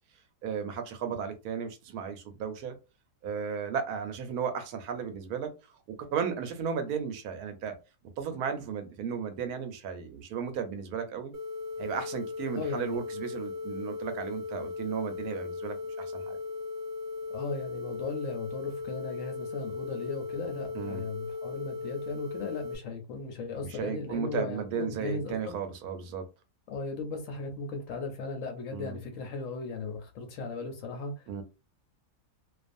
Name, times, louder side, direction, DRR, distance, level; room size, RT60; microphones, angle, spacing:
voice 1, 0.4-2.8 3.2-7.7 8.2-11.3 11.8-16.4 20.7-21.0 23.7-26.2 28.7-29.0 31.3-31.4, right 7 dB, 70° right, 1.0 m, -35 dB
sound 1, 11.3-22.8, left 4 dB, 85° right, 0.6 m, -37 dB
voice 2, 12.5-13.0 17.3-25.6 26.7-31.4, left 3 dB, 65° left, 0.8 m, -37 dB
2.5 x 2.3 x 2.5 m
omnidirectional pair, 1.8 m